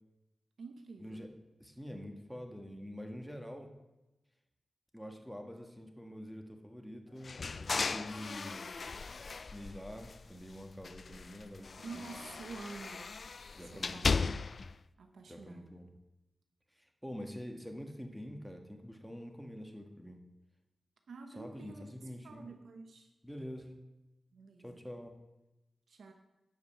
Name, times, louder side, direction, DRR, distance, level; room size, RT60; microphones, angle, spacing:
voice 1, 0.6-1.3 11.8-13.1 13.6-14.3 15.0-15.8 21.1-21.9 22.2-23.1 24.3-24.8 25.9-26.1, right 4 dB, 90° right, 5 dB, 0.9 m, -49 dB
voice 2, 1.6-3.7 4.9-8.7 9.4-12.1 13.6-14.3 15.3-15.9 16.8-20.2 21.3-22.5 23.2-23.8 24.6-25.2, equal, ahead, 3 dB, 1.5 m, -46 dB
sound 1, 7.2-10.4 10.8-14.7, left 4 dB, 60° left, 0.3 m, -37 dB
10.5 x 5.3 x 7.5 m, 1.0 s
wide cardioid pair, 80°, 0 cm